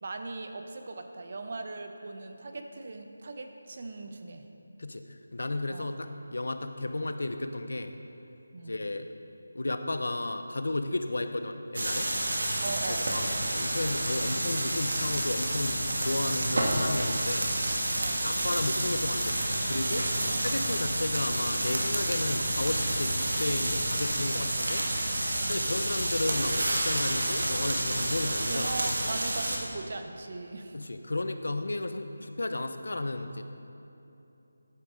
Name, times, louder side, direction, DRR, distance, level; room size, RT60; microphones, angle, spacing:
voice 1, 0.0-4.5 5.7-6.0 8.5-8.8 12.6-13.1 18.0-18.2 20.2-20.5 25.4-25.7 28.5-30.8, right 3 dB, 35° right, 5 dB, 0.7 m, -39 dB
voice 2, 5.3-7.9 8.7-9.1 9.5-12.1 13.1-13.2 13.5-15.8 16.0-17.5 18.2-24.9 25.5-29.1 30.7-33.4, left 2 dB, 70° left, 8 dB, 0.8 m, -33 dB
sound 1, 11.7-29.6, right 1 dB, 60° right, 1.8 m, -29 dB
14.0 x 8.6 x 3.9 m, 2.9 s
figure-of-eight pair, 175°, 0 cm